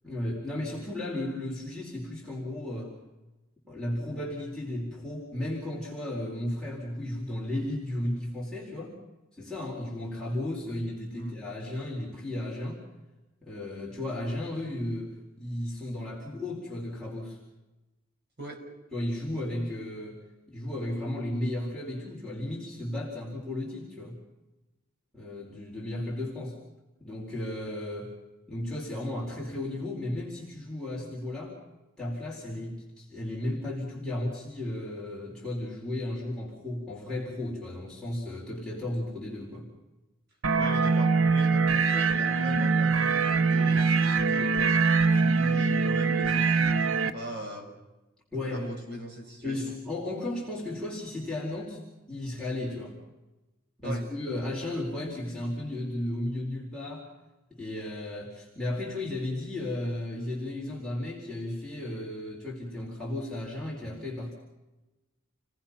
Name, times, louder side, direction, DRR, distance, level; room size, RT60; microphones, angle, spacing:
voice 1, 0.0-2.9 3.7-8.9 9.4-12.8 13.4-17.4 18.9-20.2 20.5-24.2 25.1-26.6 27.0-28.1 28.5-31.6 32.0-39.7 48.3-48.7 49.4-51.8 52.1-53.0 53.8-57.1 57.5-64.3, left 1 dB, 5° left, -5 dB, 4.3 m, -34 dB
sound 1, 40.4-47.1, right 4 dB, 75° right, 1.0 m, -23 dB
voice 2, 40.6-44.8 45.1-47.7 48.5-49.7 53.8-54.0, right 1 dB, 55° right, 2 dB, 5.9 m, -40 dB
29.5 x 19.0 x 5.9 m, 1.0 s
head